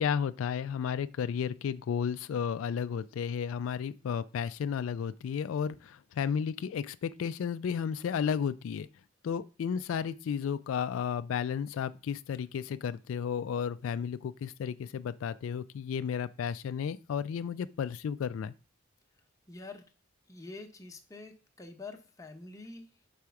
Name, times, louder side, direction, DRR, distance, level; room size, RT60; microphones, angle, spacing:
voice 1, 0.0-8.9 9.2-18.5, left 7 dB, 85° left, 0.3 m, -33 dB
voice 2, 19.5-19.9 20.3-22.9, left 3 dB, 15° left, 0.8 m, -46 dB
4.8 x 4.2 x 5.7 m
head